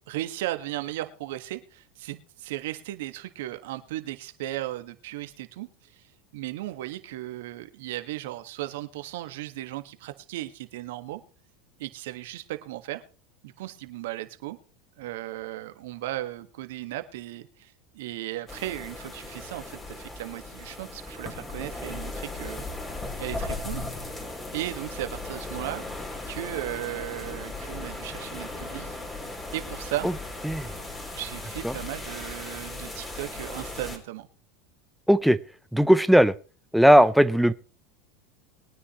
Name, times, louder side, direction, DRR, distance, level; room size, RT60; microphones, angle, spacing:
voice 1, 0.1-6.1 6.3-11.2 11.8-13.0 13.4-14.6 15.0-22.7 23.2-23.8 24.5-25.8 26.3-29.0 29.5-30.1 31.1-34.3, right 15 dB, 75° right, 9 dB, 1.6 m, -36 dB
sound 1, 18.5-34.0, left 2 dB, 15° left, 3.7 m, -37 dB
voice 2, 35.1-35.4 35.7-36.3 36.7-37.5, equal, ahead, 15 dB, 0.8 m, -18 dB
21.5 x 9.8 x 3.1 m, 0.36 s
hypercardioid pair, 95°, 0 cm